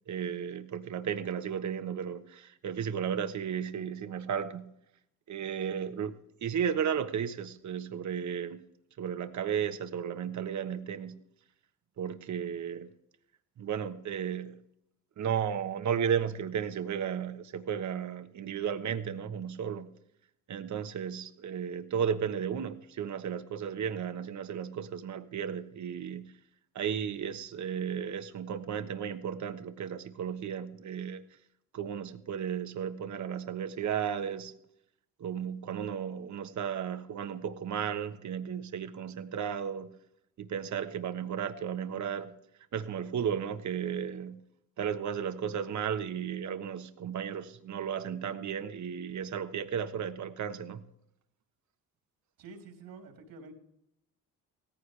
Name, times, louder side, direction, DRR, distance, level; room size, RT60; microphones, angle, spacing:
voice 1, 0.1-4.7 5.3-6.1 6.4-8.6 9.0-11.2 12.0-12.9 13.6-14.6 15.2-19.9 20.5-26.3 26.7-31.2 31.7-34.5 35.2-39.9 40.4-42.3 42.7-44.4 44.8-50.8, right 8 dB, 55° right, 1.3 m, -34 dB
voice 2, 52.4-53.5, right 4 dB, 80° right, 3.4 m, -48 dB
17.0 x 15.0 x 3.4 m
cardioid pair, 85°, 34 cm